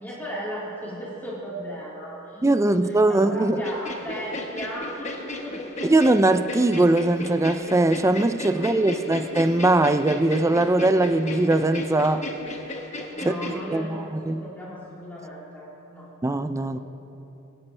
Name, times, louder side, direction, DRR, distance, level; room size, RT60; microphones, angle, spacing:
voice 1, 0.0-2.4 2.7-6.0 8.5-9.3 13.1-16.1 16.6-16.8, equal, 10° left, -7 dB, 2.3 m, -37 dB
voice 2, 2.4-3.6 5.8-12.3 13.3-14.4 16.2-16.8, right 2 dB, 15° right, 10 dB, 0.4 m, -21 dB
sound 1, 3.6-13.6, left 1 dB, 30° left, 1.3 m, -35 dB
23.0 x 11.5 x 3.3 m, 3.0 s
head